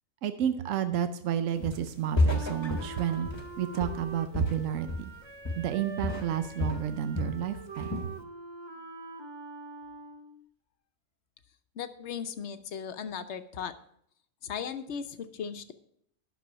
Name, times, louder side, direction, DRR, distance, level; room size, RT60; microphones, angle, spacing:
voice 1, 0.2-3.3 3.6-5.1 5.6-8.1, right 9 dB, 75° right, 10 dB, 1.0 m, -31 dB
Walk footsteps, 1.6-1.9 2.2-5.2 5.4-5.8 6.0-7.4 7.8-8.1, left 2 dB, 20° left, 1.1 m, -31 dB
Wind instrument woodwind instrument, 2.3-10.5, right 3 dB, 25° right, 0.7 m, -44 dB
voice 2, 11.8-13.7 14.4-15.7, left 7 dB, 60° left, 10 dB, 1.0 m, -37 dB
10.5 x 6.1 x 6.1 m, 0.70 s
omnidirectional pair, 1.4 m